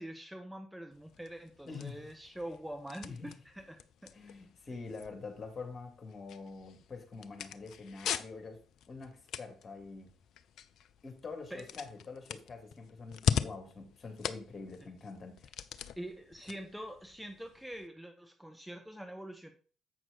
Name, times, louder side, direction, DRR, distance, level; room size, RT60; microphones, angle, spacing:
voice 1, 0.0-4.1 11.5-11.7 16.0-19.5, right 1 dB, 5° right, 1.4 m, -45 dB
sound 1, 0.9-17.9, left 8 dB, 60° left, 0.5 m, -41 dB
voice 2, 1.6-2.1 3.0-3.3 4.1-8.6 8.9-10.1 11.0-15.5, left 4 dB, 35° left, 2.4 m, -45 dB
8.0 x 6.0 x 4.0 m
figure-of-eight pair, 45°, 0 cm